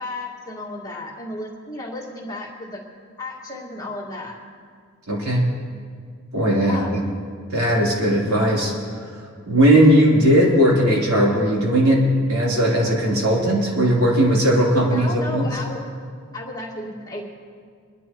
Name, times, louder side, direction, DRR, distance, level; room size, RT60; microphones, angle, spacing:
voice 1, 0.0-2.8 3.2-4.4 6.6-6.9 14.9-15.8 16.3-17.2, left 2 dB, 15° left, -3 dB, 2.0 m, -33 dB
voice 2, 5.1-5.4 6.3-7.0 7.5-12.0 12.3-15.5, right 1 dB, 90° right, -4 dB, 3.4 m, -18 dB
25.5 x 11.0 x 3.1 m, 2.1 s
head